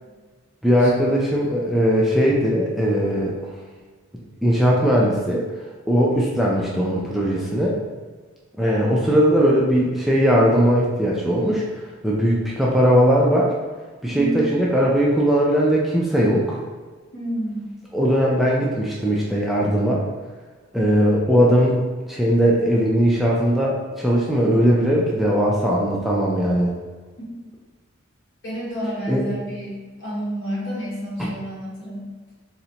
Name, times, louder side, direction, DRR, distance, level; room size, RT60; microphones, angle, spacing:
voice 1, 0.6-3.3 4.4-5.4 5.9-7.8 8.6-11.6 12.0-13.5 14.0-16.6 17.9-20.0 20.7-21.8 22.1-26.7 29.1-29.2, equal, ahead, -5 dB, 0.3 m, -19 dB
voice 2, 8.6-9.0 14.0-14.4 17.1-17.7 28.4-32.1, equal, 60° left, -6 dB, 1.1 m, -30 dB
3.8 x 2.1 x 2.8 m, 1.4 s
head